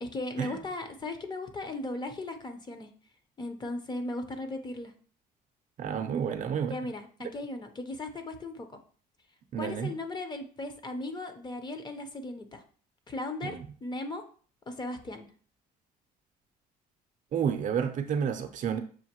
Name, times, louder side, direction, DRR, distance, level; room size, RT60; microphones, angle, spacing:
voice 1, 0.0-2.9 3.4-4.9 6.7-8.8 9.6-12.6 13.1-14.2 14.7-15.3, left 2 dB, 25° left, 7 dB, 0.6 m, -37 dB
voice 2, 5.8-6.8 9.5-9.9 13.4-13.7 17.3-18.8, right 7 dB, 50° right, 8 dB, 0.5 m, -30 dB
6.3 x 2.5 x 2.9 m, 0.43 s
cardioid pair, 110°, 17 cm